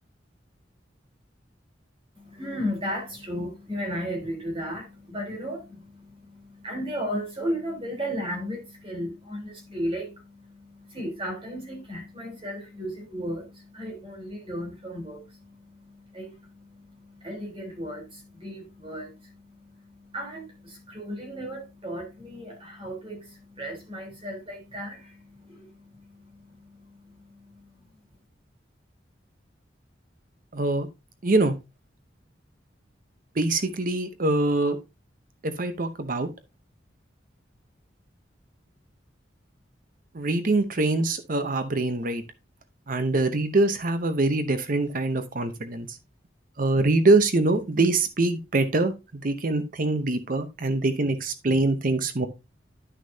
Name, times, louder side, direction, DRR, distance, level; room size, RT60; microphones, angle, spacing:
voice 1, 2.2-27.7, equal, 30° right, 3.7 m, -35 dB
voice 2, 30.5-30.9 31.2-31.5 33.3-34.8 35.4-36.3 40.1-42.2 42.9-46.0 46.6-52.3, right 2 dB, 50° right, 0.8 m, -24 dB
10.5 x 6.3 x 2.7 m
head